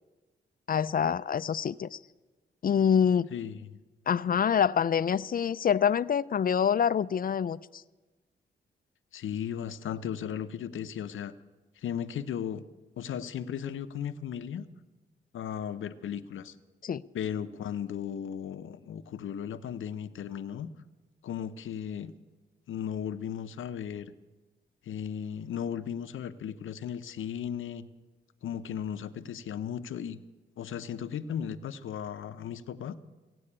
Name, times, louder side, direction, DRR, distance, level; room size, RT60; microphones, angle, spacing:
voice 1, 0.7-2.0 2.6-3.3 4.1-7.8 16.8-17.0, left 8 dB, 45° left, 18 dB, 0.4 m, -26 dB
voice 2, 3.3-3.8 9.1-11.3 11.8-12.6 13.0-14.6 15.3-16.5 17.1-20.7 21.2-22.1 22.7-24.1 24.9-27.9 28.4-30.2 30.6-33.0, left 8 dB, 85° left, 12 dB, 0.7 m, -36 dB
16.5 x 7.7 x 9.9 m, 1.2 s
cardioid pair, 70°, 20 cm